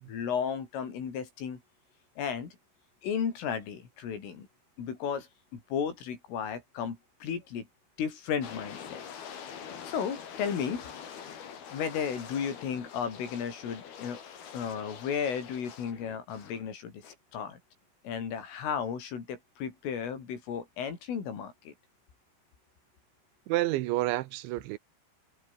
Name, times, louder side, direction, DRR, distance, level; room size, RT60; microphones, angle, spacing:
voice 1, 0.1-1.6 2.2-2.6 3.0-4.5 4.8-7.7 8.0-9.0 9.8-10.9 11.7-14.2 14.5-17.0 17.3-17.6 18.1-21.7, left 7 dB, 90° left, 7.3 m, -34 dB
sound 1, 8.4-16.6 17.0-17.2, left 7 dB, 55° left, 5.0 m, -45 dB
voice 2, 23.5-24.8, right 17 dB, 80° right, 3.1 m, -29 dB
omnidirectional pair, 5.6 m